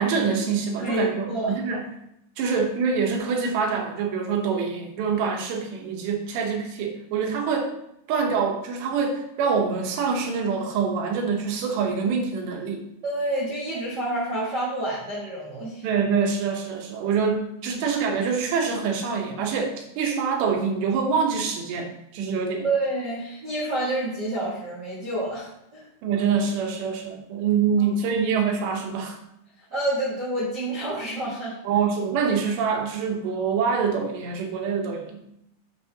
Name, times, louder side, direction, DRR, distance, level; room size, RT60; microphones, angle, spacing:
voice 1, 0.0-1.8 2.4-7.7 8.1-12.9 15.8-22.7 26.0-29.2 31.6-35.2, right 5 dB, 80° right, 2 dB, 3.3 m, -25 dB
voice 2, 0.8-1.6 5.6-5.7 13.0-15.8 17.7-17.8 22.6-25.9 28.1-28.2 29.7-31.5, right 1 dB, 65° right, -6 dB, 1.0 m, -28 dB
9.2 x 6.8 x 2.9 m, 0.78 s
omnidirectional pair, 5.0 m